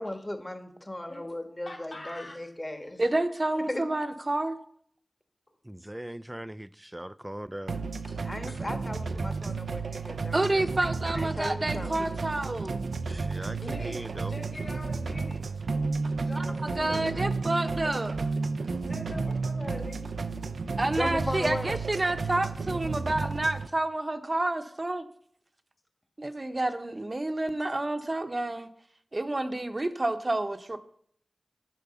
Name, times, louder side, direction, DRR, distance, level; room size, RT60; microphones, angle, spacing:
voice 1, 0.0-3.0 3.7-3.8 8.2-10.6 11.1-12.2 20.9-21.8, left 1 dB, 25° left, 1.4 m, -36 dB
voice 2, 1.6-2.4 8.5-8.6 13.6-15.5 16.2-17.1 18.8-20.1, left 1 dB, 45° left, 2.4 m, -42 dB
voice 3, 3.0-4.6 10.3-12.8 16.3-18.2 20.8-25.0 26.2-28.7 29.1-30.8, right 2 dB, 40° right, 0.9 m, -29 dB
voice 4, 5.7-7.8 13.1-14.3, right 1 dB, 15° right, 0.4 m, -40 dB
sound 1, 7.7-23.7, right 4 dB, 85° right, 0.5 m, -32 dB
10.5 x 4.6 x 6.9 m
cardioid pair, 50°, 0 cm